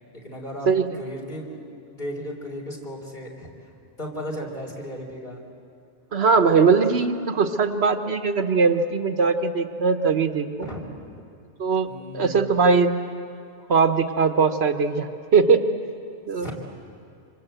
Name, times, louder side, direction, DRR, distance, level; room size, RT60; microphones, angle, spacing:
voice 1, 0.0-0.7 0.9-1.6 1.9-3.7 4.0-5.4 10.6-10.8 11.9-12.5 16.4-16.5, equal, 40° left, -1 dB, 4.0 m, -35 dB
voice 2, 6.1-10.7 11.6-11.9 12.1-12.9 13.7-15.6 16.3-16.5, right 5 dB, 65° right, 8 dB, 1.3 m, -20 dB
26.0 x 25.0 x 8.0 m, 2.5 s
omnidirectional pair, 1.2 m